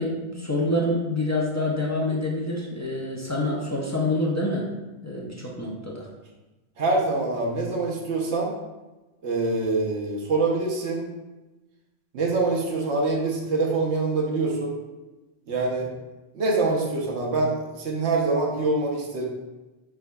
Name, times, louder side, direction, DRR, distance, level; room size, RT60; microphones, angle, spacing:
voice 1, 0.0-4.7 5.0-6.1, left 1 dB, 30° left, -4 dB, 0.3 m, -26 dB
voice 2, 6.8-8.5 9.2-11.1 12.1-14.8 15.5-15.9 16.3-19.2, right 3 dB, 80° right, -2 dB, 1.0 m, -25 dB
4.7 x 3.5 x 2.2 m, 1.1 s
omnidirectional pair, 1.1 m